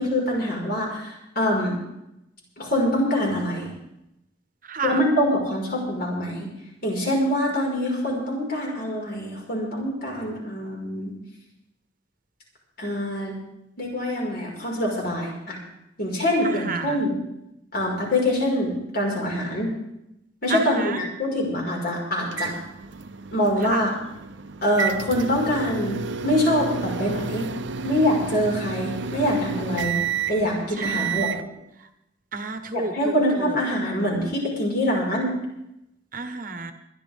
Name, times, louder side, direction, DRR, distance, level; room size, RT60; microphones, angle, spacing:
voice 1, 0.0-1.8 2.6-3.7 4.8-6.5 6.8-11.1 12.8-13.4 13.8-15.6 16.0-17.1 17.7-19.7 20.4-22.5 23.3-23.9 24.6-27.5 27.8-29.9 30.3-31.4 32.7-35.3, left 1 dB, 55° left, -2 dB, 5.3 m, -24 dB
voice 2, 4.7-5.0 16.4-17.0 20.5-21.0 23.6-23.8 30.8-31.4 32.3-33.5 36.1-36.7, right 4 dB, 45° right, 8 dB, 1.2 m, -31 dB
sound 1, 22.3-31.4, right 6 dB, 75° right, 0.8 m, -31 dB
23.5 x 11.0 x 3.7 m, 0.85 s
head